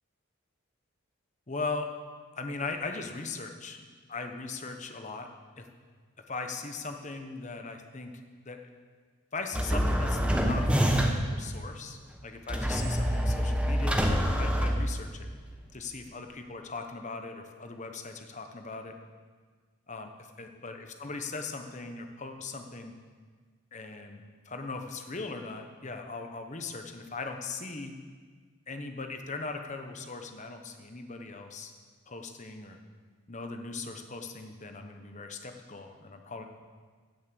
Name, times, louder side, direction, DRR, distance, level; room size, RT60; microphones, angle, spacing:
voice 1, 1.5-1.9 2.4-5.3 5.6-5.7 6.3-8.1 8.4-8.6 9.3-15.3 15.7-18.9 19.9-20.1 20.4-22.9 23.7-28.0 28.7-31.7 32.1-32.8 33.3-36.5, left 3 dB, 35° left, 5 dB, 1.0 m, -39 dB
sound 1, 9.5-11.4 12.5-15.3, equal, 5° right, 1.0 m, -26 dB
16.5 x 6.5 x 7.0 m, 1.5 s
head